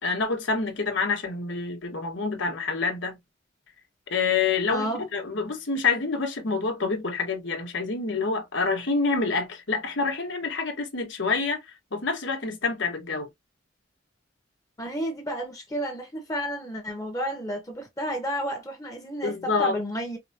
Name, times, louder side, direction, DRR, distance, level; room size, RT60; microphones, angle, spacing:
voice 1, 0.0-3.2 4.1-11.6 11.9-13.3 19.2-19.7, left 4 dB, 75° left, 1.2 m, -27 dB
voice 2, 4.7-5.0 14.8-20.2, equal, 20° left, 1.0 m, -31 dB
4.7 x 2.2 x 2.7 m
head